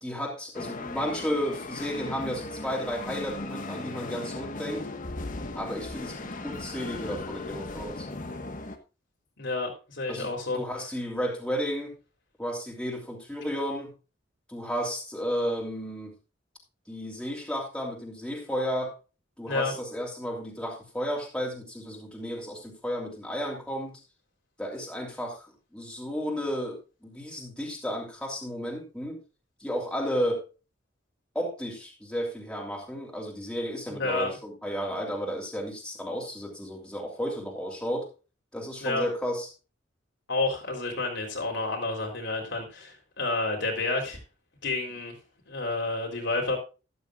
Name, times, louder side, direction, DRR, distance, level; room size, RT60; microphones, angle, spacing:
voice 1, 0.0-4.9 5.5-8.1 10.1-10.3 10.6-11.9 12.4-13.9 14.5-16.1 16.9-18.9 19.4-24.0 24.6-25.5 25.7-29.2 29.6-30.5 31.3-38.1 38.5-39.5, equal, 5° left, -1 dB, 3.1 m, -33 dB
sound 1, 0.5-8.8, left 2 dB, 45° left, 1.3 m, -37 dB
voice 2, 9.4-10.6 19.5-19.7 33.9-34.3 38.8-39.1 40.3-44.2 44.6-45.1 45.5-46.6, left 2 dB, 70° left, 1 dB, 3.7 m, -30 dB
13.0 x 11.5 x 2.4 m, 0.31 s
head